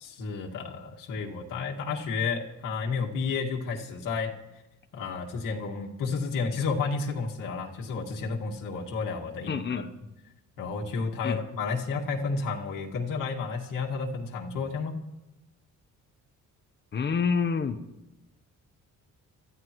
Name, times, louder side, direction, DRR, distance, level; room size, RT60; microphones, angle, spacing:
voice 1, 0.0-4.4 4.9-9.9 10.6-15.0, left 4 dB, 90° left, 0 dB, 2.0 m, -31 dB
voice 2, 9.5-9.9 11.2-11.4 16.9-17.8, left 5 dB, 35° left, 10 dB, 0.9 m, -27 dB
25.0 x 14.5 x 3.1 m, 0.98 s
cardioid pair, 155°, 31 cm